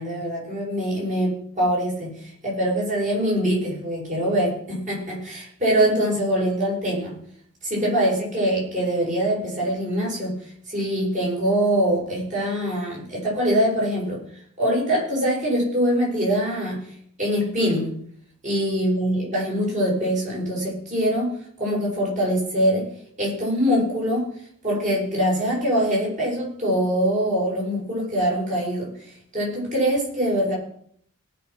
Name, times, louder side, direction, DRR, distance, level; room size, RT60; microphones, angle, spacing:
voice 1, 0.0-7.1 7.6-10.4 10.7-14.2 14.6-16.8 17.2-17.9 18.4-21.3 21.6-22.9 23.2-24.3 24.6-30.5, equal, 35° right, -4 dB, 7.6 m, -23 dB
19.0 x 6.6 x 6.2 m, 0.63 s
head